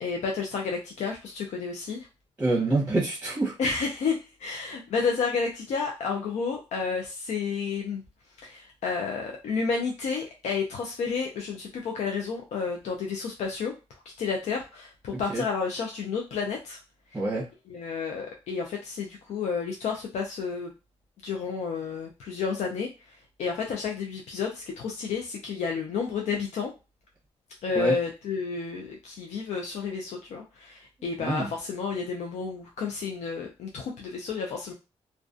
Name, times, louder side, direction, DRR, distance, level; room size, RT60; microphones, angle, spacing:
voice 1, 0.0-2.1 3.6-8.0 8.4-13.7 14.2-16.8 17.1-17.2 17.7-20.7 21.2-22.9 23.4-26.7 27.6-34.7, left 5 dB, 90° left, 1 dB, 0.4 m, -31 dB
voice 2, 2.4-3.5 15.1-15.4 17.1-17.5 27.7-28.0 31.2-31.5, right 2 dB, 10° right, -4 dB, 0.8 m, -26 dB
2.4 x 2.2 x 2.4 m, 0.29 s
wide cardioid pair, 130°, 11 cm